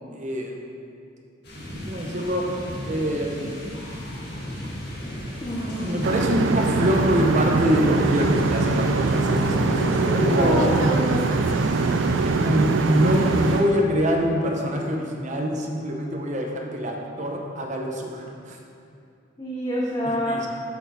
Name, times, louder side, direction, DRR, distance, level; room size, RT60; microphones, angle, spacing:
voice 1, 0.1-0.6 1.7-2.6 2.8-3.7 4.6-4.7 5.7-10.9 12.2-18.6 20.0-20.5, equal, 40° right, 1 dB, 0.9 m, -25 dB
sound 1, 1.4-13.6, equal, 60° left, 1.7 m, -36 dB
sound 2, 2.3-10.7, left 1 dB, 85° left, 1.9 m, -35 dB
voice 2, 5.4-6.0 9.8-11.3 19.4-20.5, equal, 20° left, -6 dB, 0.8 m, -27 dB
sound 3, 6.0-13.6, right 4 dB, 85° right, 0.4 m, -23 dB
8.6 x 6.3 x 4.1 m, 2.5 s
head